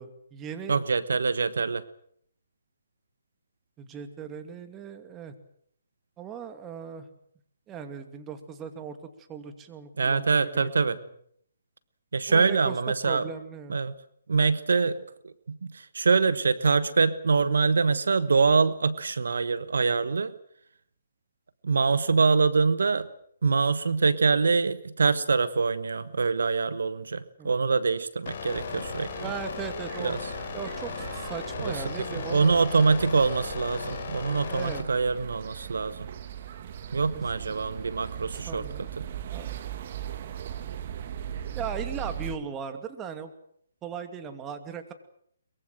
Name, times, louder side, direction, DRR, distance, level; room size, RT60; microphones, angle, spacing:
voice 1, 0.0-0.8 3.8-5.3 6.2-7.1 7.7-9.0 9.3-10.9 12.3-13.8 27.4-27.6 29.2-30.1 30.5-32.6 34.5-34.8 38.3-38.9 39.3-39.6 41.5-43.3 43.8-44.9, right 7 dB, 15° right, 8 dB, 2.6 m, -38 dB
voice 2, 0.7-1.8 10.0-11.0 12.1-13.3 13.7-13.9 14.3-20.3 21.6-23.1 23.4-29.1 30.0-30.3 31.6-36.1 36.9-39.1, right 4 dB, 75° right, 15 dB, 1.3 m, -25 dB
sound 1, 28.3-34.8, left 6 dB, 45° left, 4.1 m, -37 dB
sound 2, 28.5-42.4, right 9 dB, 45° right, 2.0 m, -39 dB
23.0 x 22.5 x 7.8 m, 0.66 s
hypercardioid pair, 145°, 0 cm